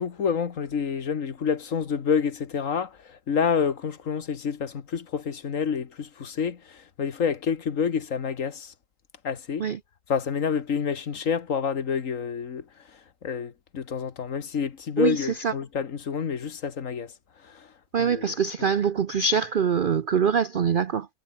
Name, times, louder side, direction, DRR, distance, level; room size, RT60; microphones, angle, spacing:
voice 1, 0.0-8.7 9.2-9.7 10.1-12.7 13.2-17.1 17.4-17.7 18.0-18.3 18.6-18.7, left 6 dB, 55° left, 1.7 m, -28 dB
voice 2, 15.0-15.5 17.9-21.1, right 6 dB, 60° right, 0.5 m, -24 dB
omnidirectional pair, 1.7 m